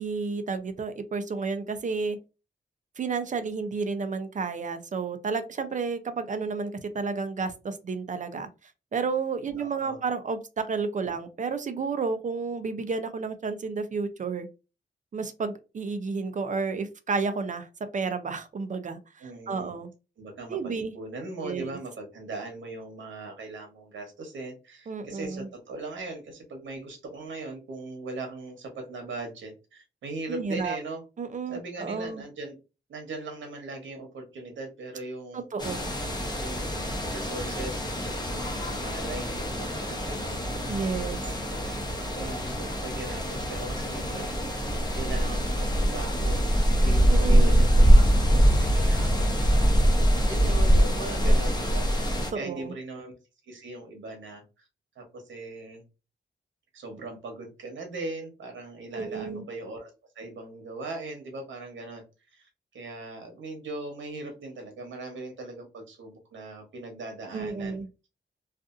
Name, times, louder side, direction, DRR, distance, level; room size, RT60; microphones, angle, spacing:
voice 1, 0.0-2.2 3.0-8.5 8.9-14.5 15.1-17.7 17.9-19.9 20.5-20.9 21.4-21.8 24.9-25.5 30.3-30.8 31.2-32.2 35.3-35.9 40.7-41.2 47.1-47.6 52.3-52.7 58.9-59.4 67.3-67.9, right 4 dB, 40° right, 9 dB, 0.5 m, -31 dB
voice 2, 9.6-10.0 19.2-19.8 20.2-31.0 31.5-32.5 32.9-35.4 36.4-40.4 41.1-41.6 41.9-44.6 44.9-46.5 46.8-53.1 53.5-54.6 54.9-55.8 56.7-62.0 62.3-67.8, right 2 dB, 80° right, 4 dB, 0.9 m, -40 dB
sound 1, 35.6-52.3, equal, 20° left, 0.8 m, -23 dB
2.5 x 2.4 x 2.5 m, 0.29 s
cardioid pair, 75°, 19 cm